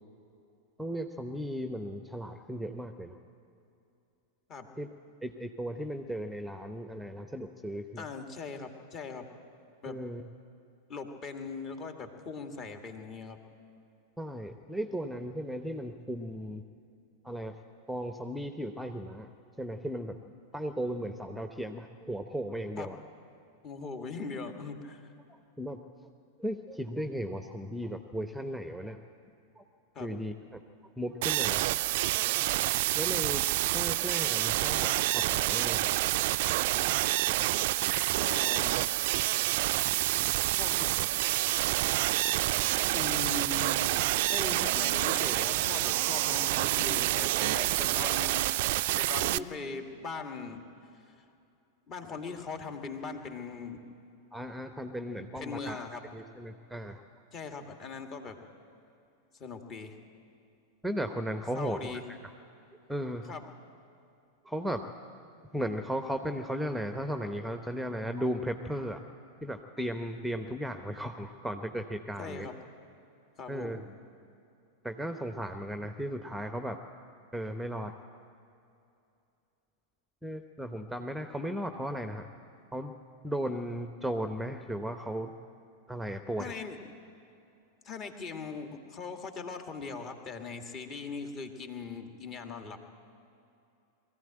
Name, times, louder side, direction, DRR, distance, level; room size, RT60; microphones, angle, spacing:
voice 1, 0.8-3.2 4.8-4.9 5.2-8.1 9.9-10.2 14.2-16.6 17.2-17.6 17.9-19.3 19.6-20.3 20.5-23.0 25.3-25.8 26.4-29.0 29.6-29.7 30.0-30.6 31.0-31.7 32.1-32.7 33.0-33.4 33.7-35.9 54.3-55.8 56.1-57.0 60.8-62.2 62.9-63.3 64.4-64.8 65.5-69.0 69.4-72.5 73.5-73.8 74.8-76.8 77.3-77.9 80.2-82.3 82.7-82.9 83.2-85.3 85.9-86.5, equal, ahead, 7 dB, 0.9 m, -36 dB
voice 2, 8.0-9.3 9.8-10.0 10.9-13.4 22.8-22.9 23.6-25.1 29.9-30.1 38.2-38.8 40.5-40.9 42.9-43.9 44.3-48.4 49.0-50.6 50.9-51.2 51.9-53.8 55.4-56.0 57.3-58.4 59.3-60.0 61.5-62.1 63.3-63.4 72.2-72.5 73.4-73.8 86.4-86.8 87.8-92.8, left 4 dB, 30° left, 5 dB, 2.1 m, -40 dB
sound 1, 31.2-49.4, right 17 dB, 50° right, 0.4 m, -28 dB
22.0 x 14.5 x 8.9 m, 2.7 s
figure-of-eight pair, 90°, 0 cm